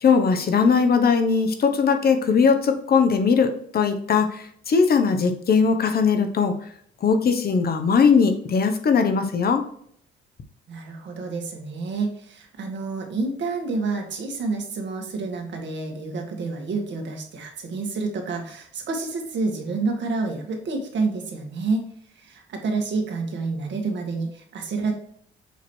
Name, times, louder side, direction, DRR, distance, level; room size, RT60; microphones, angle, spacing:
voice 1, 0.0-6.5 7.0-9.6, left 5 dB, 50° left, 7 dB, 1.1 m, -20 dB
voice 2, 10.7-21.9 22.2-24.9, right 3 dB, 65° right, 3 dB, 1.8 m, -28 dB
7.1 x 3.0 x 4.4 m, 0.65 s
cardioid pair, 90°, 20 cm